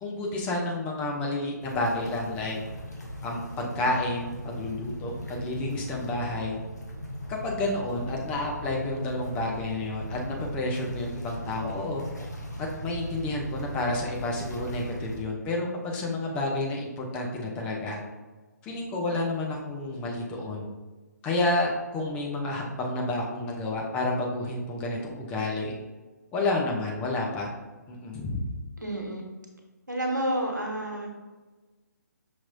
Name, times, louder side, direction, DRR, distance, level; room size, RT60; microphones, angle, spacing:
voice 1, 0.0-2.6 3.2-6.6 7.3-12.1 12.6-18.0 18.6-20.7 21.2-25.7 26.3-27.5 27.9-28.4, left 2 dB, 10° left, -1 dB, 0.4 m, -30 dB
sound 1, 1.6-15.2, equal, 70° left, 0.9 m, -38 dB
voice 2, 28.8-29.2 29.9-31.1, right 1 dB, 90° right, 0 dB, 1.0 m, -29 dB
5.7 x 2.9 x 2.5 m, 1.3 s
figure-of-eight pair, 140°, 10 cm